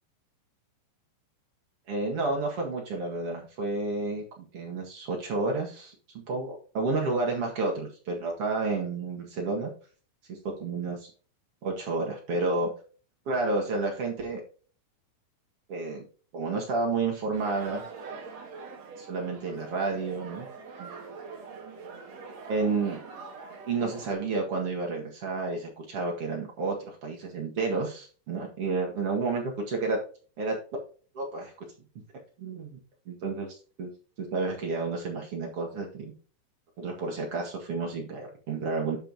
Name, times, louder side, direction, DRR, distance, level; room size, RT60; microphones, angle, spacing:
voice 1, 1.9-5.9 6.3-9.7 10.3-11.1 11.6-12.7 13.2-14.4 15.7-16.0 16.3-17.8 19.0-20.5 20.8-21.2 22.5-23.0 23.7-30.0 30.4-30.6 31.1-31.5 32.4-32.8 33.0-33.5 33.8-33.9 34.2-36.1 36.8-39.0, right 3 dB, 70° right, 0 dB, 1.4 m, -30 dB
sound 1, 17.3-24.1, right 4 dB, 50° right, 2.0 m, -43 dB
12.5 x 5.7 x 2.8 m, 0.39 s
omnidirectional pair, 5.7 m